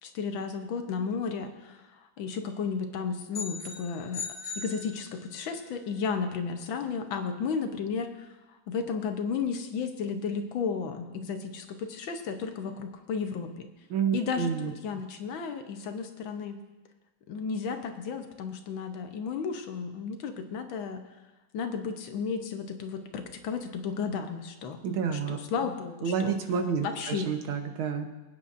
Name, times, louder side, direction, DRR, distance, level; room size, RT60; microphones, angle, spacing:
voice 1, 0.0-4.2 4.6-13.7 14.1-16.6 17.3-21.0 21.5-24.8 25.1-26.3 26.8-27.3, left 5 dB, 75° left, 6 dB, 1.7 m, -33 dB
sound 1, 3.3-5.5, left 4 dB, 45° left, 2.0 m, -39 dB
voice 2, 13.9-14.7 24.8-25.4 26.0-28.1, right 7 dB, 80° right, 5 dB, 1.9 m, -29 dB
24.0 x 9.1 x 2.6 m, 1.1 s
omnidirectional pair, 2.2 m